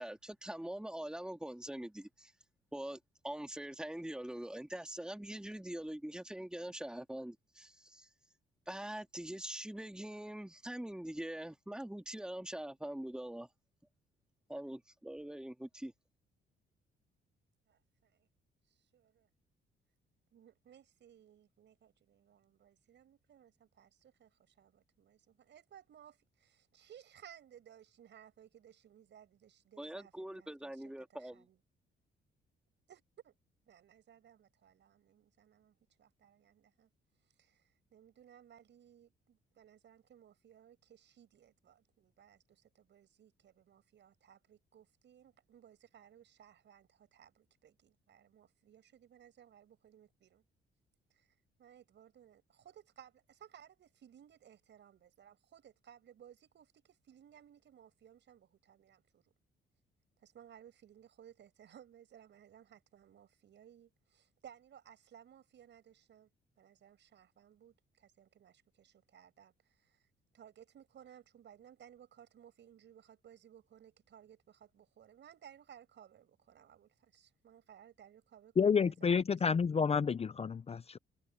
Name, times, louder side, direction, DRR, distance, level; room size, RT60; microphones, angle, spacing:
voice 1, 0.0-2.3 2.7-3.0 3.2-8.1 8.7-13.5 14.5-15.9 29.8-31.4, right 1 dB, 5° right, 2.4 m, -43 dB
voice 2, 17.7-18.3 18.7-19.3 20.3-30.8 31.1-31.6 32.9-33.4 33.6-36.9 37.4-50.4 51.1-51.3 51.6-59.3 60.2-66.3 66.6-70.1 70.3-79.2, right 9 dB, 65° right, 6.2 m, -60 dB
voice 3, 78.6-81.0, left 6 dB, 30° left, 0.6 m, -30 dB
cardioid pair, 90°, 20 cm